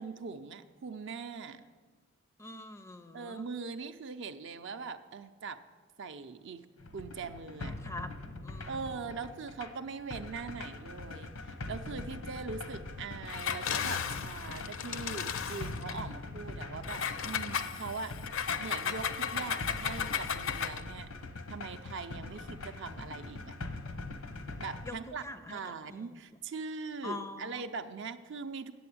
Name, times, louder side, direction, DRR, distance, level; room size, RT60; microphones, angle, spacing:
voice 1, 0.0-1.6 3.1-5.6 6.0-6.7 6.9-7.7 8.7-21.1 21.5-23.5 24.6-25.2 25.5-28.7, right 4 dB, 60° right, 10 dB, 0.5 m, -41 dB
voice 2, 2.4-3.5 7.6-8.1 8.4-9.1 22.3-22.4 24.8-26.2 27.0-27.6, left 2 dB, 15° left, 10 dB, 0.4 m, -45 dB
sound 1, 6.8-24.9, left 2 dB, 90° left, 0.9 m, -43 dB
Engine, 13.2-16.0 16.8-20.9, left 7 dB, 65° left, 0.5 m, -35 dB
7.9 x 7.7 x 8.4 m, 1.4 s
head